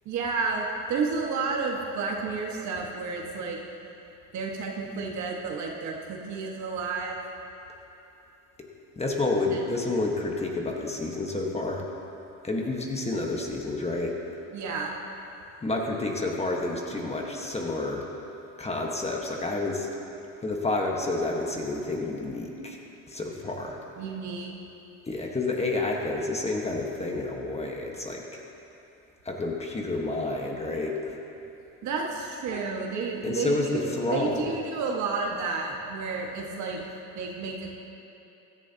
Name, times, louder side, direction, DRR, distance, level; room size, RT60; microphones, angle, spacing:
voice 1, 0.1-3.6 4.3-7.2 9.5-9.7 14.5-15.0 24.0-24.5 31.8-36.8 37.2-37.7, right 4 dB, 60° right, -1 dB, 1.7 m, -31 dB
voice 2, 9.0-11.8 12.4-14.4 15.6-18.0 18.6-19.9 20.4-22.8 23.1-23.8 25.1-28.2 29.2-31.2 33.2-34.5, left 2 dB, 20° left, 0 dB, 1.4 m, -29 dB
16.0 x 11.5 x 2.9 m, 2.9 s
supercardioid pair, 105°, 33 cm